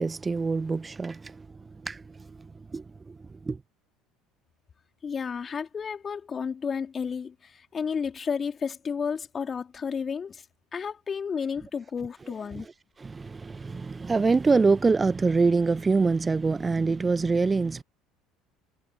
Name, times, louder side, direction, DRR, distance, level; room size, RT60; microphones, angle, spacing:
voice 1, 0.0-3.6 12.5-12.7 13.0-17.8, right 4 dB, 20° right, 0.6 m, -25 dB
voice 2, 5.0-10.4 10.7-12.7, left 6 dB, 35° left, 3.0 m, -32 dB
figure-of-eight pair, 60°, 0 cm